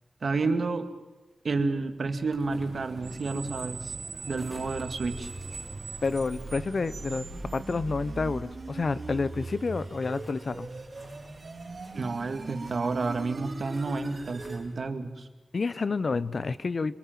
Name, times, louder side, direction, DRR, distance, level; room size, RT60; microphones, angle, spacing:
voice 1, 0.2-0.9 1.4-3.9 4.3-5.3 11.9-15.3, right 3 dB, 70° right, 7 dB, 2.2 m, -30 dB
sound 1, 2.3-14.8, equal, 35° left, 7.8 m, -52 dB
sound 2, 2.5-14.7, right 3 dB, 55° right, 4.2 m, -42 dB
Screech, 2.5-8.3, right 4 dB, 90° right, 2.1 m, -42 dB
voice 2, 6.0-7.3 7.5-10.7 15.5-16.9, left 4 dB, 60° left, 15 dB, 0.9 m, -29 dB
26.5 x 21.5 x 7.6 m, 1.1 s
wide cardioid pair, 75°, 0 cm